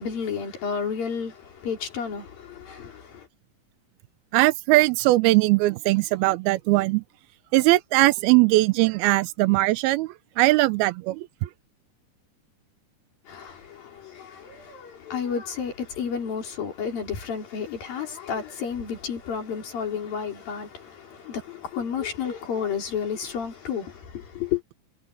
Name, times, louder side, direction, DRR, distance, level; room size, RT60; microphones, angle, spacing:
voice 1, 0.0-3.3 13.3-24.6, left 7 dB, 70° left, 5.8 m, -31 dB
voice 2, 4.3-7.0 7.5-10.1 10.4-11.5, right 20 dB, 85° right, 2.6 m, -20 dB
omnidirectional pair, 4.3 m